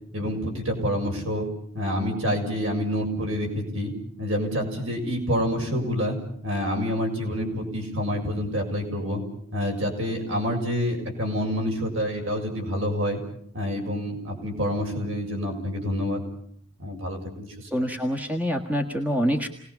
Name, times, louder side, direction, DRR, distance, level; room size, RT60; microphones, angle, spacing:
voice 1, 0.1-1.5 1.7-3.9 4.2-6.2 6.4-9.2 9.5-13.2 13.5-16.2 16.8-17.7, equal, 65° right, 1 dB, 7.0 m, -27 dB
voice 2, 17.7-19.5, equal, 5° right, 3 dB, 1.6 m, -25 dB
29.5 x 20.0 x 7.1 m, 0.63 s
head